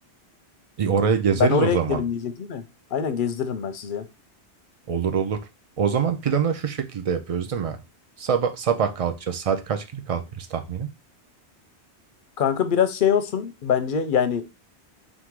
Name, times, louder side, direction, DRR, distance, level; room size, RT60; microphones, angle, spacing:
voice 1, 0.8-2.0 4.9-5.4 5.8-7.8 8.2-10.9, right 7 dB, 55° right, 8 dB, 0.4 m, -24 dB
voice 2, 1.4-2.6 2.9-4.1 12.4-14.4, left 7 dB, 60° left, 9 dB, 0.6 m, -23 dB
3.6 x 2.5 x 4.5 m, 0.26 s
omnidirectional pair, 1.1 m